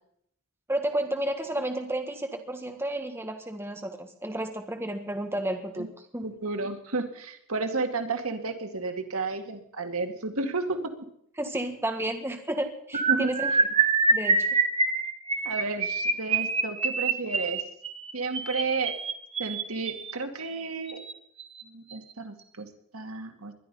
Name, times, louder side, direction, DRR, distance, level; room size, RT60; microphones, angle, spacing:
voice 1, 0.7-5.9 6.1-6.3 11.4-13.5 14.1-14.5, right 1 dB, 10° right, 5 dB, 1.5 m, -31 dB
voice 2, 6.2-10.9 13.1-13.3 15.4-17.6 18.1-19.0 19.4-21.0 21.6-23.5, right 3 dB, 80° right, 6 dB, 2.1 m, -32 dB
sound 1, 12.9-20.1 20.9-21.1 21.4-21.6 21.9-22.1, right 4 dB, 25° right, 1.2 m, -26 dB
21.0 x 12.0 x 5.5 m, 0.71 s
head